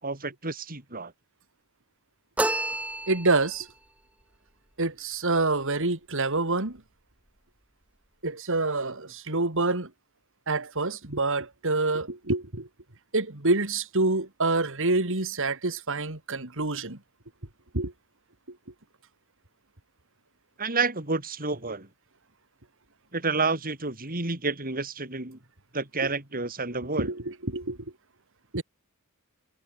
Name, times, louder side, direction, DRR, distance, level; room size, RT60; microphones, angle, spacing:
voice 1, 0.0-1.1 20.6-21.9 23.1-25.4 25.7-27.1, right 3 dB, 40° right, 4.7 m, -30 dB
sound 1, 2.4-3.6, right 1 dB, 5° right, 1.8 m, -29 dB
voice 2, 3.1-3.7 4.8-6.8 8.2-9.9 10.5-12.7 13.1-17.0 17.7-17.9 26.0-26.1 27.0-27.8 28.5-28.6, right 3 dB, 60° right, 3.1 m, -27 dB
head